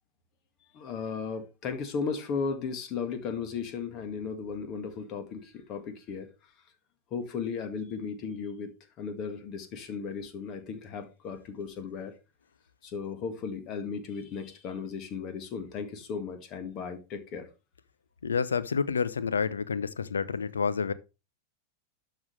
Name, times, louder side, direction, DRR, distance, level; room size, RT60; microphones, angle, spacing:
voice 1, 0.7-6.3 7.1-12.1 12.8-17.5, left 5 dB, 35° left, 2.0 m, -36 dB
voice 2, 18.2-20.9, left 5 dB, 70° left, 0.7 m, -29 dB
12.0 x 5.9 x 3.3 m
figure-of-eight pair, 90°, 0 cm